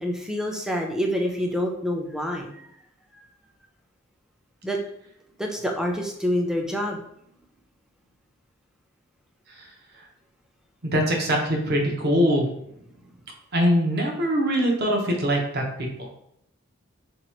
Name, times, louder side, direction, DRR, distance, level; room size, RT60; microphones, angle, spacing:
voice 1, 0.0-2.6 4.6-4.8 5.4-7.0, equal, 5° right, 1 dB, 0.4 m, -27 dB
voice 2, 9.5-10.1 10.8-12.8 13.5-16.1, equal, 50° right, 0 dB, 0.7 m, -23 dB
2.9 x 2.3 x 4.2 m, 0.74 s
head